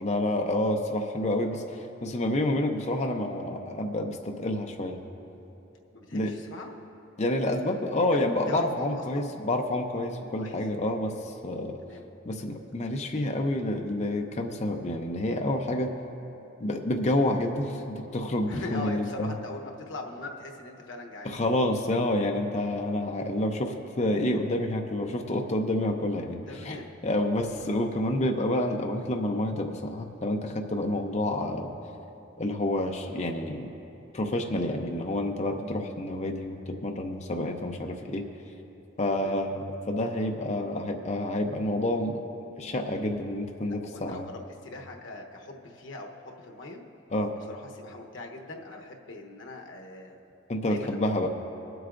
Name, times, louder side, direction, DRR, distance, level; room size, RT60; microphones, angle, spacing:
voice 1, 0.0-5.0 6.1-6.3 7.2-11.8 12.3-15.9 16.6-19.3 21.2-26.7 27.0-31.7 32.4-33.7 34.1-38.2 39.0-42.2 42.6-44.3 47.1-47.3 50.5-51.3, left 1 dB, 35° left, 3 dB, 0.6 m, -28 dB
voice 2, 5.9-6.7 8.1-8.2 8.5-9.4 10.3-10.6 11.8-12.1 18.5-21.4 26.5-26.9 39.1-39.4 43.6-46.8 47.3-50.2 50.7-51.3, left 2 dB, 85° left, 2 dB, 1.0 m, -41 dB
22.5 x 7.9 x 2.5 m, 2.9 s
head